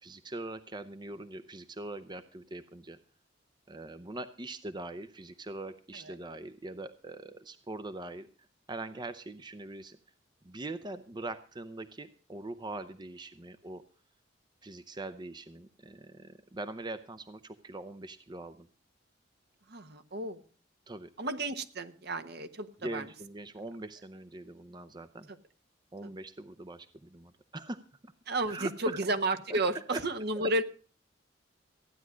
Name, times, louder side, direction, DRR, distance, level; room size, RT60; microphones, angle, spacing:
voice 1, 0.0-3.0 3.7-8.3 8.7-10.0 10.4-13.8 14.6-18.7 20.9-21.1 22.8-25.3 25.9-28.1 28.5-29.0 29.5-29.6 29.9-30.0 30.4-30.5, right 2 dB, 25° right, 11 dB, 0.7 m, -42 dB
voice 2, 19.7-20.4 21.2-23.1 25.3-25.4 26.0-26.1 28.3-30.6, right 2 dB, 60° right, 9 dB, 1.2 m, -32 dB
15.0 x 9.7 x 6.2 m, 0.40 s
head